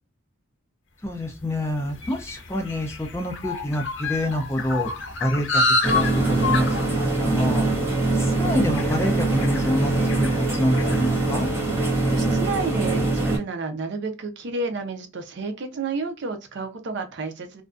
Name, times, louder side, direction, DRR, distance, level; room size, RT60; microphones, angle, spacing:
voice 1, 1.0-4.9 5.2-7.7 8.1-11.5, equal, 15° left, 0.4 m, -27 dB
sound 1, 1.3-11.9, left 3 dB, 60° left, 0.6 m, -30 dB
sound 2, 5.8-13.4, right 2 dB, 10° right, 0.8 m, -23 dB
voice 2, 11.9-17.6, right 3 dB, 55° right, 0.5 m, -31 dB
2.4 x 2.1 x 2.3 m
head